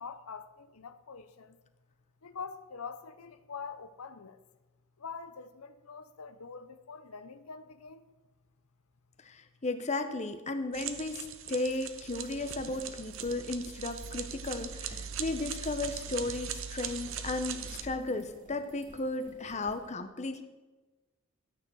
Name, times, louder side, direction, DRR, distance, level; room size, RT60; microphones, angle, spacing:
voice 1, 0.0-1.6 2.2-4.4 5.0-8.0, left 5 dB, 80° left, 0.8 m, -44 dB
voice 2, 9.2-20.4, left 2 dB, 30° left, 0.9 m, -35 dB
sound 1, 10.7-17.8, right 7 dB, 60° right, 1.0 m, -40 dB
sound 2, 11.0-11.1 11.4-19.9, right 1 dB, 35° right, 2.3 m, -55 dB
13.0 x 9.2 x 6.4 m
head